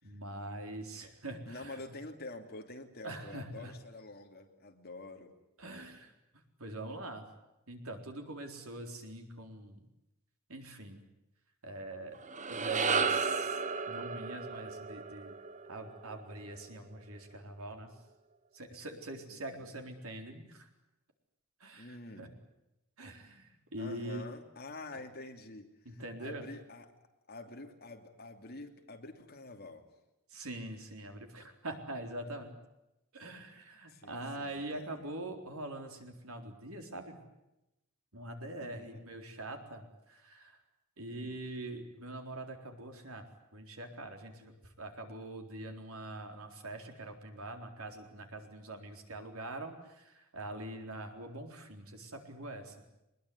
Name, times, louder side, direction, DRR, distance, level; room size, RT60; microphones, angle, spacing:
voice 1, 0.0-1.8 3.0-3.8 5.6-6.1 6.6-7.3 7.7-9.8 10.5-11.0 11.6-12.2 12.5-13.6 13.9-15.4 15.7-17.9 18.5-20.7 21.6-22.3 23.0-24.2 24.9-25.0 25.9-26.5 30.3-32.6 33.1-37.2 38.1-40.6 41.0-43.2 43.5-52.8, right 1 dB, 80° right, 4 dB, 4.0 m, -43 dB
voice 2, 1.5-5.3 19.3-19.7 21.7-22.3 23.8-26.9 27.3-29.8 33.9-35.0 38.6-39.0 41.1-41.4, left 2 dB, 45° left, 4 dB, 2.8 m, -48 dB
sound 1, 12.2-16.6, right 5 dB, 35° right, 1.0 m, -34 dB
23.0 x 20.5 x 9.7 m, 0.91 s
head